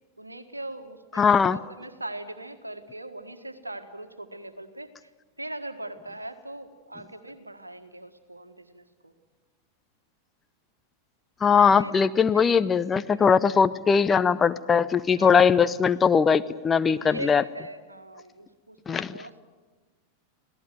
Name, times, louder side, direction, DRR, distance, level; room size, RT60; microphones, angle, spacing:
voice 1, 0.2-5.1 5.4-9.1 11.7-11.9 12.3-12.5 13.1-13.3 15.1-15.7 16.0-16.1 17.0-19.4, right 1 dB, 85° right, 10 dB, 1.6 m, -40 dB
voice 2, 1.2-1.6 11.4-17.4 18.9-19.1, left 6 dB, 20° left, 13 dB, 0.7 m, -20 dB
26.0 x 17.5 x 9.2 m, 1.3 s
figure-of-eight pair, 90°, 0 cm